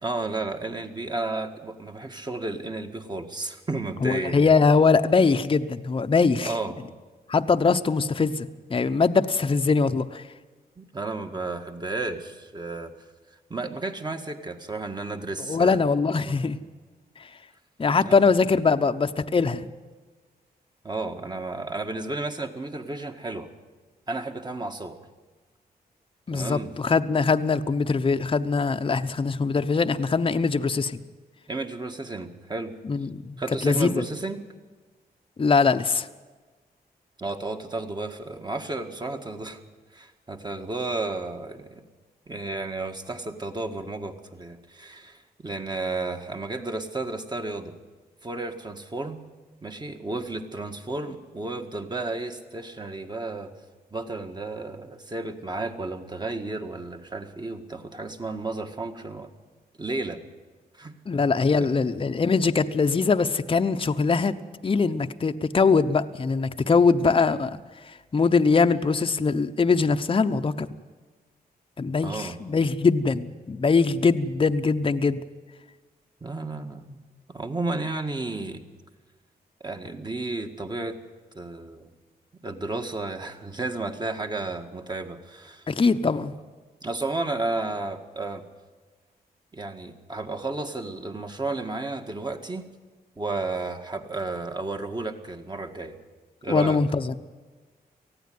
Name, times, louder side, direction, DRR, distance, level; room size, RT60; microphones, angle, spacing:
voice 1, 0.0-4.5 6.4-6.7 10.8-12.9 13.5-15.8 16.2-16.4 18.0-18.3 20.8-23.5 24.1-25.0 26.3-26.8 31.5-32.7 33.4-34.4 37.2-39.6 39.9-41.8 42.3-47.7 48.2-49.2 49.6-53.5 53.9-59.3 59.8-60.2 60.7-60.9 61.8-61.9 72.0-72.4 76.2-77.0 77.3-78.6 79.6-81.0 81.3-81.9 82.4-85.7 86.8-88.4 89.5-92.7 93.2-96.0 96.4-96.8, right 2 dB, 25° right, 5 dB, 1.9 m, -32 dB
voice 2, 4.0-6.5 7.3-10.2 15.5-16.6 17.8-19.7 26.3-31.0 32.8-34.0 35.4-36.1 61.1-64.4 64.6-67.6 68.1-70.7 71.8-75.2 85.7-86.3 96.5-97.2, left 4 dB, 30° left, 8 dB, 0.8 m, -22 dB
19.0 x 15.0 x 9.5 m, 1.3 s
cardioid pair, 95°, 17 cm